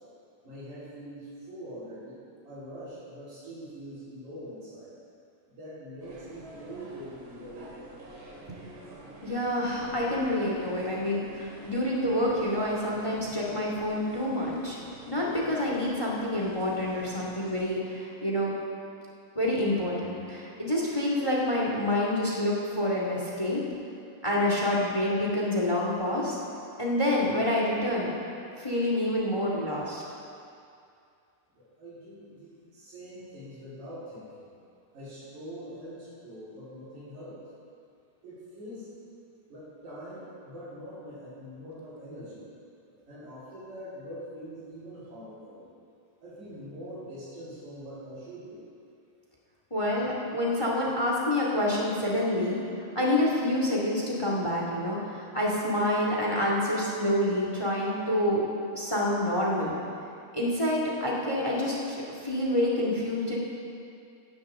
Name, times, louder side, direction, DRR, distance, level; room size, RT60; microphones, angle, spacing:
voice 1, 0.4-2.2 2.4-4.9 5.5-8.0 31.6-34.5 34.9-37.4 38.2-38.9 39.5-42.5 43.1-45.7 46.2-48.7, equal, 90° right, -13 dB, 5.7 m, -43 dB
sound 1, 6.0-17.6, right 2 dB, 60° right, 3.2 m, -48 dB
voice 2, 9.2-14.8 15.1-18.5 19.4-23.7 24.2-26.4 26.8-28.1 28.6-30.0 49.7-52.6 52.9-58.4 58.7-59.7 60.3-63.4, left 1 dB, 10° left, -3 dB, 1.8 m, -27 dB
17.5 x 15.0 x 3.8 m, 2.5 s
omnidirectional pair, 3.4 m